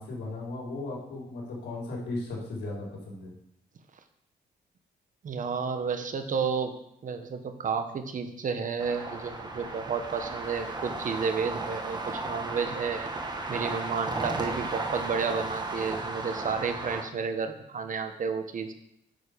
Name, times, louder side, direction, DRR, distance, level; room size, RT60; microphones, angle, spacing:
voice 1, 0.0-3.3, left 2 dB, 90° left, -3 dB, 4.1 m, -36 dB
voice 2, 5.2-6.8 7.0-13.1 13.5-18.7, right 5 dB, 50° right, 8 dB, 1.1 m, -31 dB
sound 1, 8.8-17.0, right 3 dB, 25° right, 1.3 m, -35 dB
9.4 x 6.7 x 5.1 m, 0.77 s
cardioid pair, 105°, 18 cm